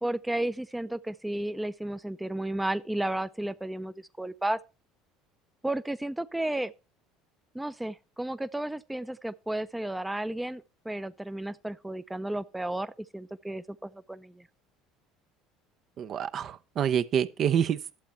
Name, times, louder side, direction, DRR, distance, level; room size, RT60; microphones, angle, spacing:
voice 1, 0.0-4.6 5.6-6.7 7.5-14.5, right 1 dB, 5° right, 0.6 m, -33 dB
voice 2, 16.0-18.0, right 8 dB, 50° right, 0.7 m, -27 dB
12.0 x 7.5 x 4.4 m
hypercardioid pair, 70°, 0 cm